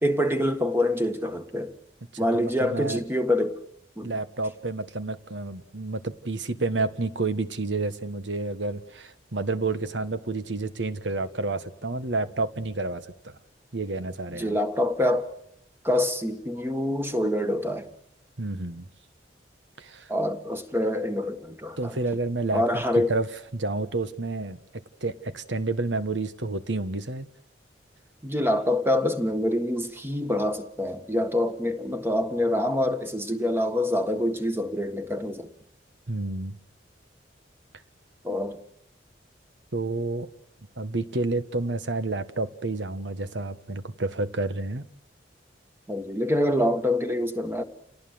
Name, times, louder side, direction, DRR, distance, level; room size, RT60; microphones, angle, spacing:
voice 1, 0.0-1.7 2.2-3.6 4.0-4.1 14.3-15.3 15.8-17.9 20.1-22.0 22.5-23.1 28.2-35.5 38.2-38.6 45.9-47.6, left 1 dB, 15° right, 1.6 m, -26 dB
voice 2, 2.1-3.0 4.0-13.4 13.7-14.6 18.4-18.9 19.8-20.1 21.8-22.8 23.1-24.6 25.0-27.3 36.1-36.6 39.7-40.3 40.8-44.9, right 3 dB, 85° right, 1.4 m, -30 dB
28.0 x 19.0 x 7.8 m
head